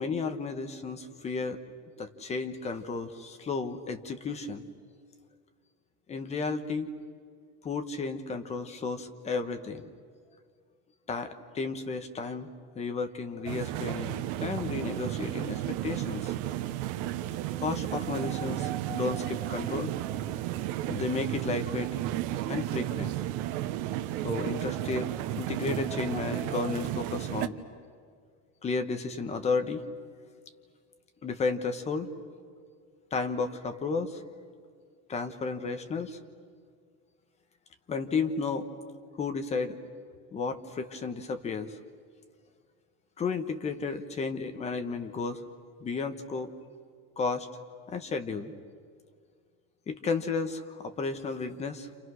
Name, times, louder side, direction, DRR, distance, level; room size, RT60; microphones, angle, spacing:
voice 1, 0.0-1.6 2.0-4.7 6.1-6.9 7.6-9.8 11.1-12.5 12.7-16.3 16.8-16.9 17.6-19.9 20.9-21.9 22.5-23.2 24.2-25.1 25.4-27.6 28.6-29.8 31.2-32.1 33.1-34.2 35.1-36.2 37.9-38.7 39.2-39.8 40.3-41.8 43.2-45.4 45.8-46.5 47.2-47.5 47.9-48.5 49.9-51.9, left 4 dB, 20° left, 7 dB, 1.2 m, -33 dB
sound 1, 13.5-27.5, right 13 dB, 75° right, 1.3 m, -33 dB
30.0 x 28.0 x 6.4 m, 2.1 s
cardioid pair, 175°, 33 cm